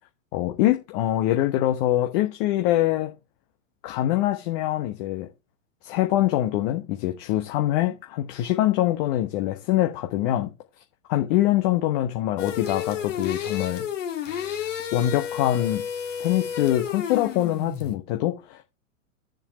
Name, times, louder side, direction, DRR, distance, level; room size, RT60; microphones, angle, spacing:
voice 1, 0.3-3.1 3.8-5.3 5.8-10.5 11.1-13.9 14.9-15.8 16.2-18.6, left 14 dB, 40° left, 1.2 m, -24 dB
sound 1, 12.4-18.0, left 8 dB, 65° left, 2.1 m, -31 dB
7.9 x 7.2 x 4.2 m
figure-of-eight pair, 95°, 40 cm